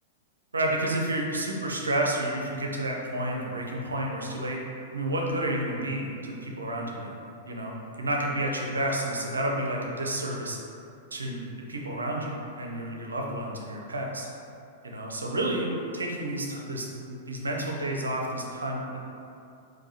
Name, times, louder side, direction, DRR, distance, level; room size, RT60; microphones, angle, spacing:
voice 1, 0.5-4.6 4.9-7.2 7.5-10.6 11.1-11.4 11.7-14.3 14.8-19.0, right 1 dB, 80° right, 0 dB, 0.5 m, -30 dB
4.6 x 2.1 x 2.8 m, 2.6 s
figure-of-eight pair, 100°, 0 cm